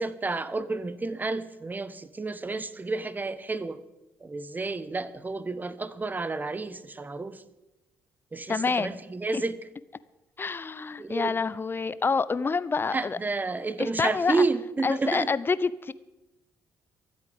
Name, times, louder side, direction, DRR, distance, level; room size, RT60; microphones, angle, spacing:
voice 1, 0.0-3.8 4.2-7.4 8.3-9.6 11.0-11.4 12.9-15.3, right 3 dB, 25° right, 14 dB, 1.3 m, -30 dB
voice 2, 8.5-8.9 9.3-9.4 10.4-13.2 13.8-14.4 14.8-15.9, left 4 dB, 30° left, 17 dB, 0.8 m, -27 dB
23.5 x 8.3 x 5.3 m, 0.98 s
hypercardioid pair, 50°, 7 cm